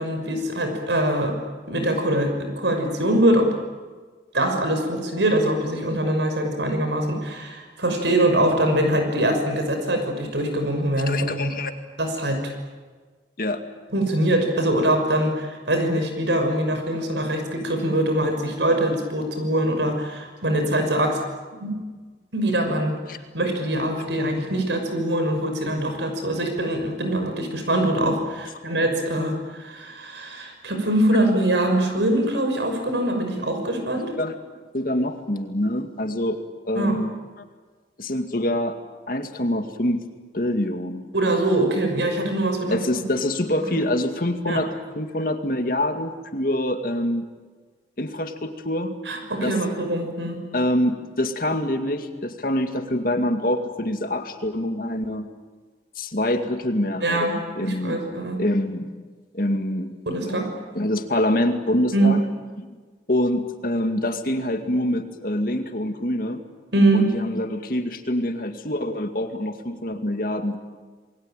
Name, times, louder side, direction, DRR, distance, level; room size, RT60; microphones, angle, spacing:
voice 1, 0.0-1.4 1.7-3.5 4.3-11.5 12.0-12.5 13.9-21.2 21.6-21.9 22.3-23.0 23.3-34.1 36.8-37.0 41.1-42.8 43.7-43.8 44.5-44.6 49.0-50.5 57.0-58.4 60.1-60.5 61.9-62.2 66.7-67.1, right 1 dB, 90° right, 5 dB, 6.2 m, -23 dB
voice 2, 11.1-11.7 13.4-13.6 23.1-23.2 34.0-34.4 34.7-37.1 38.0-38.8 39.1-40.0 40.3-41.1 42.7-47.3 48.0-49.0 49.4-49.5 50.5-55.3 56.0-57.3 57.5-58.0 58.4-59.1 59.3-59.9 60.2-60.4 60.7-62.2 62.6-62.7 63.1-66.4 66.9-70.6, left 1 dB, 50° left, 6 dB, 2.2 m, -25 dB
28.5 x 21.5 x 9.1 m, 1.4 s
head